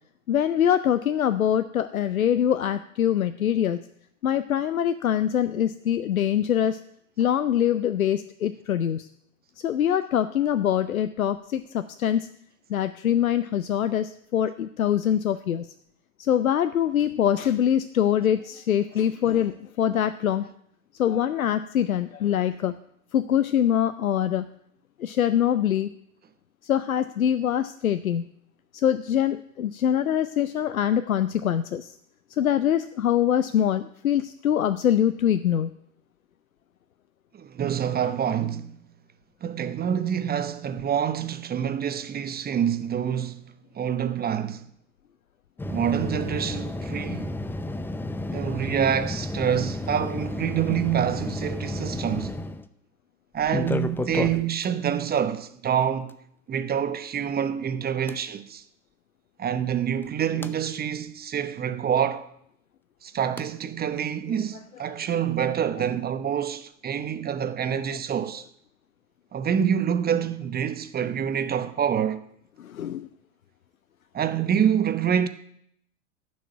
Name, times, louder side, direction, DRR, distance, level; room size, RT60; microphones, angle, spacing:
voice 1, 0.3-3.8 4.2-6.8 7.2-9.1 9.6-12.3 12.7-15.7 16.2-20.5 21.0-22.8 23.1-24.5 25.0-25.9 26.6-28.3 28.7-31.9 32.4-35.7 72.6-73.1, left 10 dB, 90° left, 0.6 m, -24 dB
voice 2, 37.3-38.7 39.4-44.6 45.7-47.4 48.3-52.4 53.3-56.1 56.5-58.6 59.4-62.3 63.0-68.5 69.3-72.2 74.1-75.3, right 8 dB, 25° right, 1.0 m, -26 dB
sound 1, 45.6-52.7 53.4-54.7 56.1-56.2 58.1-58.2 60.0-60.5 63.4-63.5, left 2 dB, 5° left, 0.6 m, -31 dB
11.5 x 6.5 x 9.1 m
hypercardioid pair, 85°, 40 cm